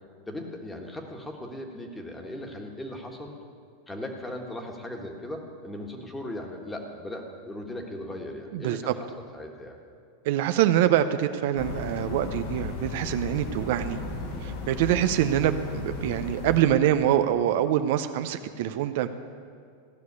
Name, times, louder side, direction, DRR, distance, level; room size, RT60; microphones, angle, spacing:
voice 1, 0.3-3.3 3.9-9.1 9.3-9.8, left 1 dB, 10° left, 2 dB, 1.6 m, -38 dB
voice 2, 8.5-8.9 10.2-14.0 14.4-19.1, right 11 dB, 65° right, 9 dB, 0.6 m, -25 dB
sound 1, 11.6-16.6, left 3 dB, 65° left, 2.3 m, -35 dB
15.0 x 6.2 x 9.7 m, 2.2 s
supercardioid pair, 130°, 0 cm